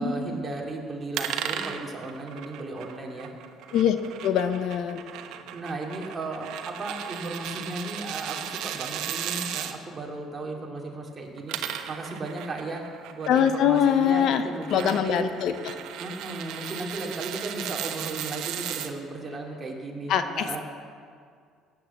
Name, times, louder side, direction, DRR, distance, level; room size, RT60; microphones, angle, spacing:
voice 1, 0.0-3.3 5.5-11.6 11.9-15.3 16.0-20.6, right 2 dB, 25° right, 0 dB, 2.5 m, -35 dB
sound 1, 1.1-9.7 11.3-18.9, right 9 dB, 75° right, 1.1 m, -36 dB
voice 2, 4.2-5.0 13.3-14.4 14.7-15.7 20.1-20.6, left 8 dB, 65° left, 9 dB, 0.9 m, -23 dB
16.0 x 8.4 x 8.0 m, 2.1 s
cardioid pair, 115°, 0 cm